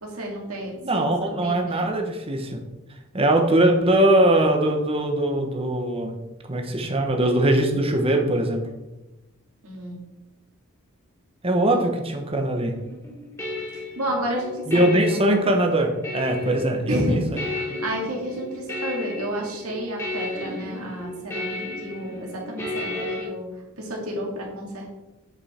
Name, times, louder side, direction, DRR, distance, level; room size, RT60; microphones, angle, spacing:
voice 1, 0.0-1.9 9.6-10.0 11.7-11.8 13.7-15.4 16.9-23.5 23.8-24.9, equal, 70° right, 0 dB, 2.2 m, -31 dB
voice 2, 0.8-2.6 3.1-6.2 6.5-8.6 11.4-12.8 14.7-17.4, right 1 dB, 25° right, 3 dB, 1.0 m, -21 dB
sound 1, 12.7-23.2, left 2 dB, 15° left, 2.4 m, -33 dB
8.2 x 5.4 x 4.3 m, 1.0 s
head